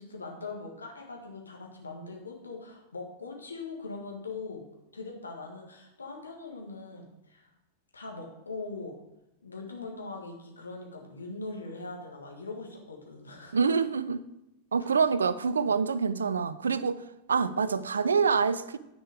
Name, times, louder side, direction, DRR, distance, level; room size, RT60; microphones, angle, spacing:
voice 1, 0.0-4.6 4.9-7.5 7.9-8.9 9.4-13.6 14.8-14.9, left 3 dB, 75° left, 1.6 m, -41 dB
voice 2, 13.5-14.2 14.7-17.0 17.3-18.8, right 5 dB, 70° right, 0.4 m, -26 dB
9.7 x 5.3 x 4.8 m
figure-of-eight pair, 90°, 0 cm